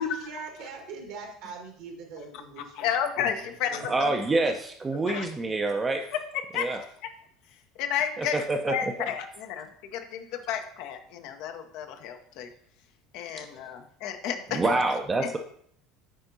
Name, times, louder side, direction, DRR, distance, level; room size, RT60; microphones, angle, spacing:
voice 1, 0.0-2.9 3.4-3.9, right 4 dB, 60° right, 2 dB, 1.6 m, -42 dB
voice 2, 2.6-4.1 5.0-5.2 6.3-6.7 7.8-12.5 13.1-14.7 15.2-15.3, left 8 dB, 55° left, 7 dB, 0.6 m, -32 dB
voice 3, 3.9-6.0 6.5-6.8 8.2-8.7 14.5-15.4, right 2 dB, 20° right, 4 dB, 0.6 m, -26 dB
10.0 x 4.3 x 2.7 m, 0.64 s
figure-of-eight pair, 65°, 0 cm